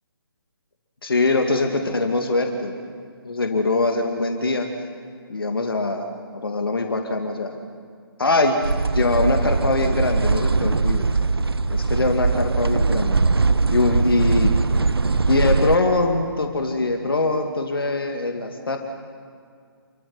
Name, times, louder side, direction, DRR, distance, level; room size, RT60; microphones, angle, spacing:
voice 1, 1.0-2.7 3.2-4.7 5.3-6.1 6.3-7.6 8.2-11.1 11.7-13.2 13.7-14.5 15.3-18.8, left 2 dB, 60° left, 4 dB, 2.3 m, -22 dB
sound 1, 8.6-15.8, right 3 dB, 70° right, 0.9 m, -21 dB
28.0 x 15.0 x 9.6 m, 2.2 s
figure-of-eight pair, 140°, 13 cm